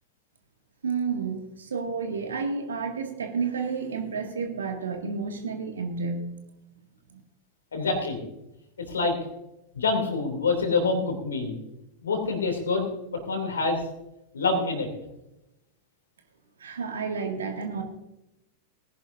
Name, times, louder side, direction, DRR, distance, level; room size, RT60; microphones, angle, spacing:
voice 1, 0.8-6.3 16.6-17.8, right 5 dB, 70° right, 4 dB, 2.1 m, -31 dB
voice 2, 7.7-8.2 8.9-9.2 9.7-11.6 12.0-12.9 13.3-13.8 14.3-14.9, left 3 dB, 70° left, 5 dB, 2.9 m, -26 dB
19.5 x 10.5 x 2.7 m, 0.91 s
figure-of-eight pair, 90°, 0 cm